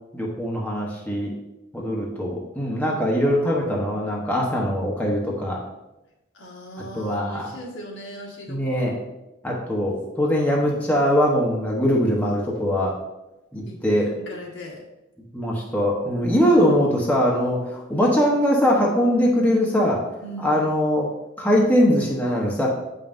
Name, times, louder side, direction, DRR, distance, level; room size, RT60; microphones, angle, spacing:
voice 1, 0.1-1.3 1.7-5.6 6.9-7.5 8.5-9.0 9.4-12.9 13.5-14.1 15.3-20.0 20.4-21.1 21.4-22.7, equal, 10° left, -3 dB, 0.9 m, -21 dB
voice 2, 6.3-8.9 13.7-13.8 14.3-14.8 20.2-20.6, equal, 65° left, -2 dB, 1.3 m, -38 dB
8.3 x 5.4 x 2.5 m, 0.97 s
head